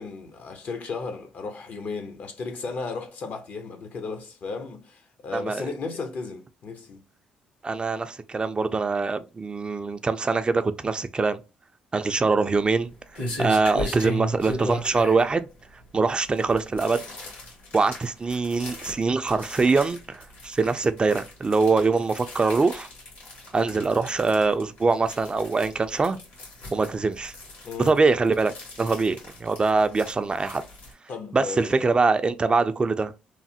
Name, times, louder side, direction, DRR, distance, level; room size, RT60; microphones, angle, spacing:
voice 1, 0.0-7.0 27.6-28.0 31.1-31.9, left 4 dB, 60° left, 0.7 m, -35 dB
voice 2, 5.3-5.7 7.6-11.4 11.9-12.9 13.4-15.5 15.9-17.0 17.7-22.9 23.5-26.2 26.7-27.3 27.8-28.5 28.8-30.6 31.3-33.1, right 4 dB, 30° right, 0.3 m, -23 dB
sound 1, 12.4-30.9, left 1 dB, 75° left, 1.6 m, -38 dB
3.1 x 2.0 x 2.8 m
supercardioid pair, 60°, 3 cm